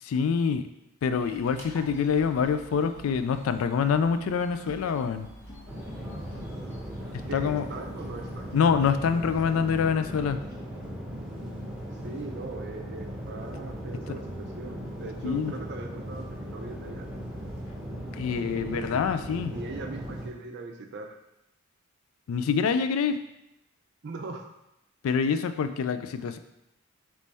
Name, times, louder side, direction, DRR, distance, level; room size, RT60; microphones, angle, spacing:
voice 1, 0.0-0.7 1.0-5.3 7.3-7.7 8.5-10.4 15.2-15.6 18.1-19.5 22.3-23.2 25.0-26.4, left 6 dB, 80° left, 10 dB, 0.3 m, -26 dB
sound 1, 1.1-9.9, right 1 dB, 10° left, 0.7 m, -50 dB
sound 2, 1.8-11.0, left 1 dB, 50° left, 1.1 m, -52 dB
sound 3, 5.7-20.3, equal, 5° right, 1.0 m, -38 dB
voice 2, 7.3-8.5 12.0-17.1 18.3-19.1 19.4-21.2 24.0-24.5, right 3 dB, 55° right, 4 dB, 0.5 m, -40 dB
3.4 x 3.1 x 4.0 m, 0.87 s
head